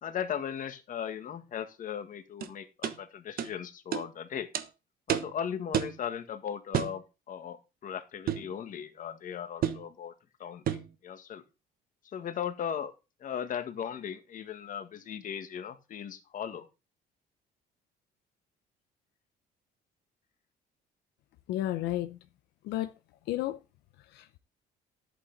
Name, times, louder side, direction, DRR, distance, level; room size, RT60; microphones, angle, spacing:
voice 1, 0.0-4.5 5.1-10.1 10.4-11.4 12.0-12.9 13.2-16.7, left 8 dB, 50° left, 1.7 m, -37 dB
sound 1, 2.4-2.5 2.8-3.0 3.4-3.5 3.9-4.1 4.5-4.7 5.1-5.3 5.7-6.0 6.7-7.0 8.3-8.5 9.6-9.9 10.7-10.9, right 10 dB, 60° right, 1.3 m, -30 dB
voice 2, 21.5-22.2 22.6-22.9 23.3-23.6 24.1-24.4, left 14 dB, 80° left, 0.7 m, -32 dB
11.0 x 8.5 x 4.0 m
cardioid pair, 110°, 17 cm